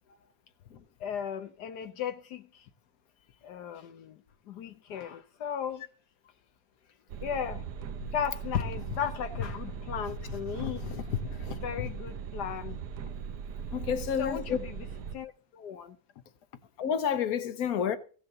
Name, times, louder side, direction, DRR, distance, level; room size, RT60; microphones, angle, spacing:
voice 1, 1.0-2.7 3.4-4.2 4.5-5.8 7.2-7.7 8.1-12.8 14.2-14.9 15.1-16.0, left 8 dB, 80° left, 1.4 m, -35 dB
sound 1, 7.1-15.2, right 7 dB, 80° right, 1.4 m, -39 dB
voice 2, 13.7-14.6 16.8-18.0, left 8 dB, 65° left, 1.6 m, -29 dB
16.0 x 6.8 x 6.7 m
omnidirectional pair, 1.7 m